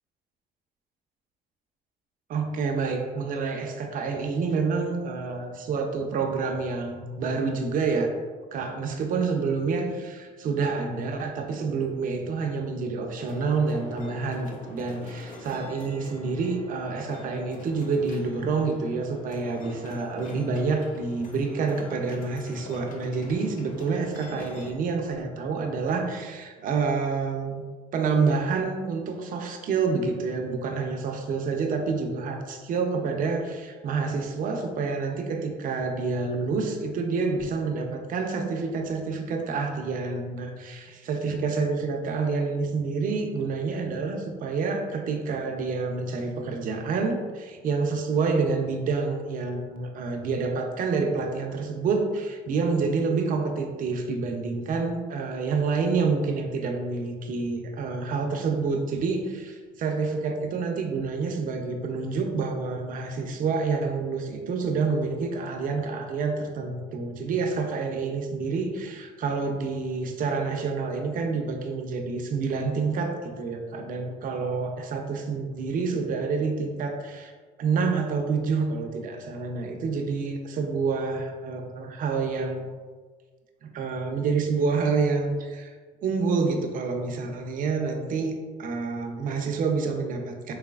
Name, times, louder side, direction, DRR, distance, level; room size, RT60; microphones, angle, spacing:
voice 1, 2.3-8.1 8.5-27.6 27.9-77.3 77.6-82.7 83.6-85.7 86.0-88.3 88.6-90.5, right 4 dB, 55° right, 3 dB, 0.6 m, -28 dB
sound 1, 13.2-24.7, left 2 dB, 50° left, 0.6 m, -44 dB
4.0 x 3.0 x 2.3 m, 1.5 s
cardioid pair, 110°, 17 cm